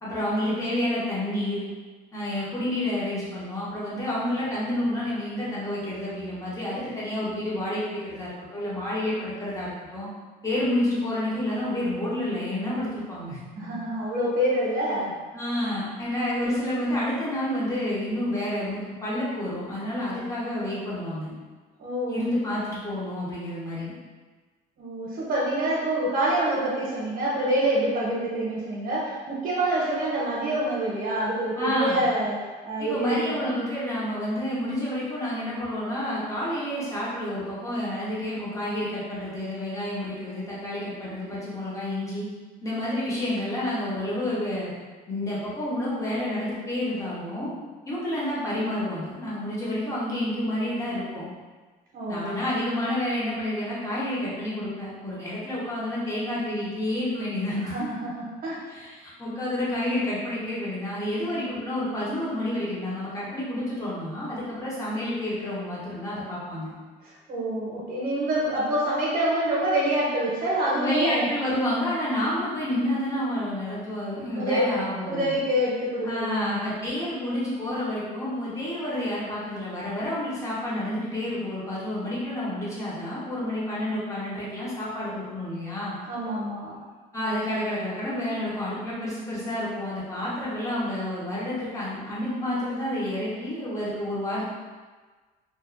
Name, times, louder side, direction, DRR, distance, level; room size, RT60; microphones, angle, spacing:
voice 1, 0.0-1.7 2.1-10.1 10.4-13.4 15.3-21.3 22.1-23.9 31.6-32.0 32.8-42.2 42.6-44.7 45.1-47.5 47.8-51.3 52.1-57.9 58.7-66.7 70.8-75.3 76.0-86.0 87.1-94.4, left 1 dB, 20° left, -8 dB, 1.0 m, -29 dB
voice 2, 13.6-15.2 21.8-22.2 24.8-33.5 51.9-52.4 57.6-58.6 67.0-71.3 74.4-76.8 86.1-86.8, right 1 dB, 60° right, -5 dB, 0.8 m, -26 dB
2.7 x 2.4 x 2.4 m, 1.4 s
cardioid pair, 110°, 17 cm